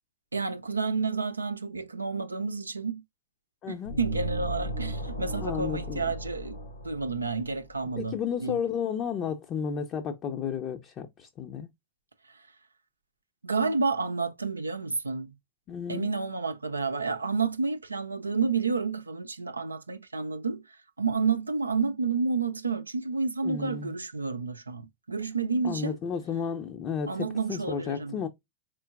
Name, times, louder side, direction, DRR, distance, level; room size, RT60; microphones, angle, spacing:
voice 1, 0.3-3.0 3.7-6.6 6.8-8.6 12.3-12.4 13.4-15.3 15.9-20.6 21.0-26.0 27.1-28.2, right 4 dB, 80° right, 0.5 m, -30 dB
voice 2, 3.6-3.9 5.4-6.1 8.0-11.7 15.7-16.1 23.4-23.9 25.6-28.3, left 7 dB, 30° left, 0.6 m, -33 dB
sound 1, 3.8-7.7, equal, 75° left, 1.3 m, -36 dB
4.3 x 3.8 x 2.2 m
figure-of-eight pair, 90°, 0 cm